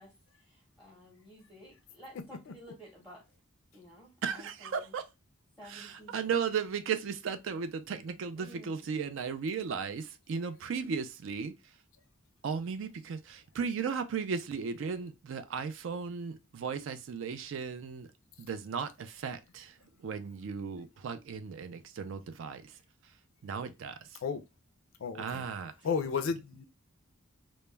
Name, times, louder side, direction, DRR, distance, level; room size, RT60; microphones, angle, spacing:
voice 1, 0.0-3.3 3.7-4.9 5.6-6.3 8.4-8.9, equal, 5° right, 0.7 m, -53 dB
voice 2, 4.2-5.0 5.6-11.5 12.4-18.1 18.4-22.8 23.4-24.2 25.2-25.7, right 6 dB, 65° right, 0.3 m, -36 dB
voice 3, 25.0-25.4 25.8-26.6, left 5 dB, 70° left, 0.4 m, -32 dB
2.2 x 2.0 x 3.1 m
head